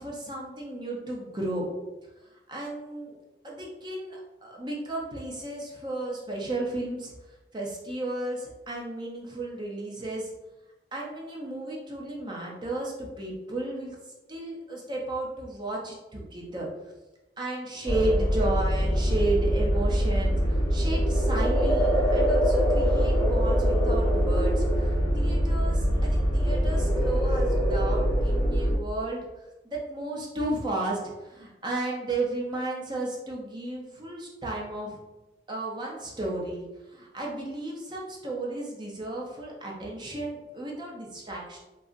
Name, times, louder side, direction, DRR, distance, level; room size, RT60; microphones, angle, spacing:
voice 1, 0.0-1.6 2.3-3.2 3.4-7.1 7.5-10.3 10.9-14.0 14.3-16.7 17.4-29.2 29.6-35.0 35.5-41.6, right 2 dB, 25° right, -2 dB, 0.5 m, -33 dB
sound 1, 17.9-28.8, equal, 20° left, 0.9 m, -23 dB
3.6 x 2.0 x 2.5 m, 1.0 s
head